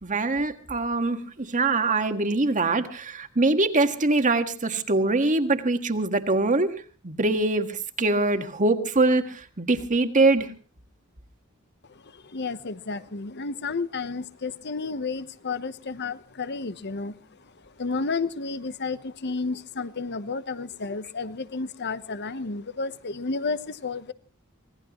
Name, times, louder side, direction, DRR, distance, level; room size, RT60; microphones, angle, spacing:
voice 1, 0.0-10.5, right 2 dB, 40° right, 8 dB, 1.7 m, -23 dB
voice 2, 11.9-17.2 17.6-24.1, left 4 dB, 55° left, 14 dB, 1.0 m, -32 dB
25.5 x 18.5 x 3.0 m, 0.37 s
head